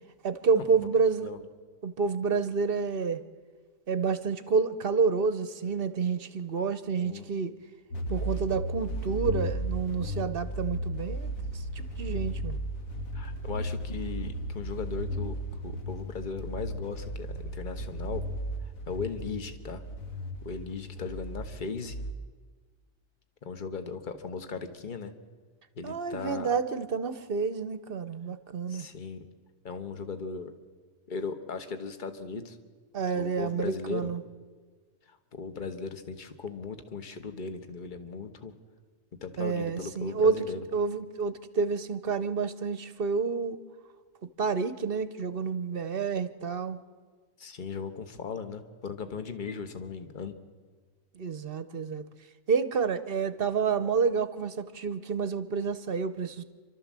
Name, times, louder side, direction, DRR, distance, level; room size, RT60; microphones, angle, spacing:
voice 1, 0.2-1.3 1.8-3.2 3.9-7.5 8.1-12.6 25.8-28.9 32.9-34.2 39.4-40.4 40.7-43.6 44.4-46.8 51.1-52.0 52.5-56.4, right 5 dB, 50° right, 13 dB, 0.9 m, -29 dB
sound 1, 7.9-22.1, right 1 dB, 80° left, 1.9 m, -35 dB
voice 2, 13.1-15.3 15.6-18.2 18.9-19.8 20.4-22.0 23.4-25.1 25.8-26.5 28.7-29.2 29.6-30.5 31.1-32.6 33.1-34.1 35.3-38.5 39.2-40.6 47.4-50.3, left 5 dB, 40° left, 8 dB, 1.3 m, -37 dB
27.5 x 12.5 x 7.4 m, 1.5 s
omnidirectional pair, 1.4 m